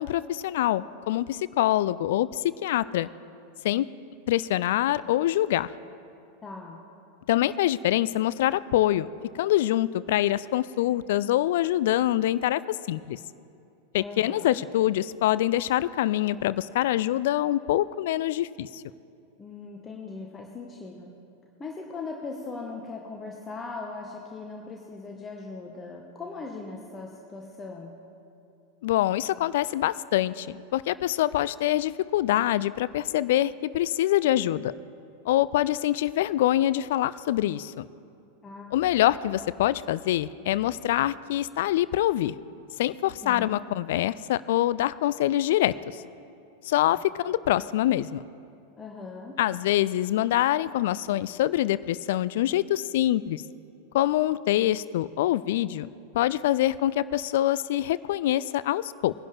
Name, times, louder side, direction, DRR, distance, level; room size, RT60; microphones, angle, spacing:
voice 1, 0.0-3.1 3.6-3.9 4.3-5.7 7.3-9.1 9.3-12.6 12.9-13.2 13.9-18.8 28.8-34.7 35.3-37.9 38.7-42.4 42.8-46.0 46.6-48.2 49.4-53.4 53.9-55.9 56.1-59.1, left 13 dB, 55° left, 18 dB, 0.3 m, -25 dB
voice 2, 6.4-6.8 14.0-14.6 19.4-21.1 21.6-28.0 38.4-38.7 43.2-43.6 46.9-47.1 48.8-49.3, left 3 dB, 20° left, 0 dB, 1.1 m, -39 dB
21.0 x 11.0 x 3.3 m, 2.7 s
figure-of-eight pair, 90°, 0 cm